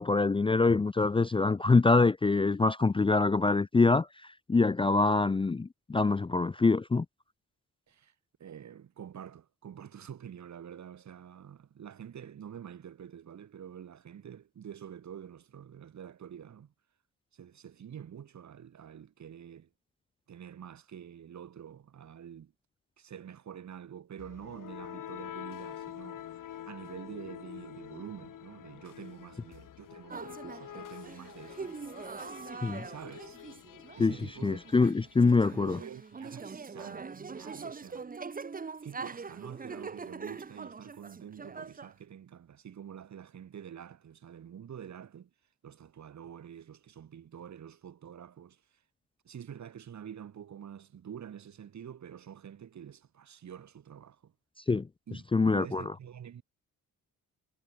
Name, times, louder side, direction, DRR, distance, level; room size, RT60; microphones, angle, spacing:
voice 1, 0.0-7.1 32.6-32.9 34.0-34.2 34.4-35.8 54.7-54.9 55.3-55.9, left 3 dB, 15° left, 0.5 m, -25 dB
voice 2, 8.4-16.7 17.3-19.7 20.3-22.5 23.0-31.7 32.8-33.4 34.0-38.1 38.8-45.3 45.6-48.6 49.2-54.3 55.1-55.2 55.5-56.4, right 9 dB, 55° right, 3.0 m, -47 dB
sound 1, 24.2-36.1, left 11 dB, 70° left, 3.6 m, -47 dB
sound 2, 30.1-41.9, right 5 dB, 25° right, 1.3 m, -43 dB
cardioid pair, 95°, 33 cm